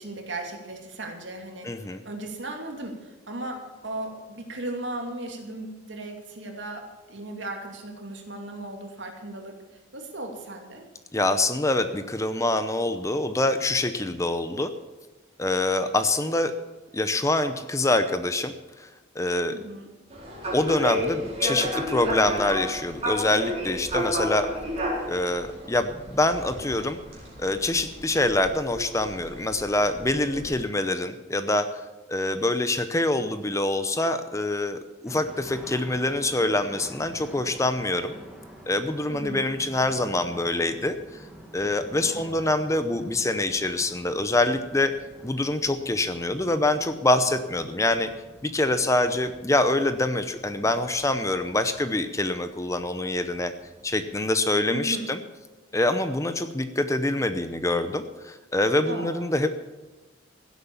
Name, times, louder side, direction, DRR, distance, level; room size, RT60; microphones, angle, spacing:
voice 1, 0.0-1.7 2.0-9.6 9.9-10.8 19.5-19.9 30.4-30.5 39.1-39.5 42.1-42.3 54.7-55.1 58.9-59.3, right 2 dB, 70° right, 3 dB, 2.7 m, -36 dB
voice 2, 1.6-2.0 11.1-14.7 15.4-16.5 16.9-18.9 19.1-19.5 20.5-24.5 25.1-27.0 27.4-38.1 38.7-41.2 41.5-44.9 45.2-48.1 48.4-53.5 53.8-55.2 55.7-59.5, left 2 dB, 15° left, 10 dB, 0.7 m, -25 dB
sound 1, 20.1-30.5, equal, 35° right, 4.3 m, -32 dB
sound 2, 35.1-54.3, equal, 5° right, 1.9 m, -48 dB
16.0 x 8.2 x 7.1 m, 1.2 s
head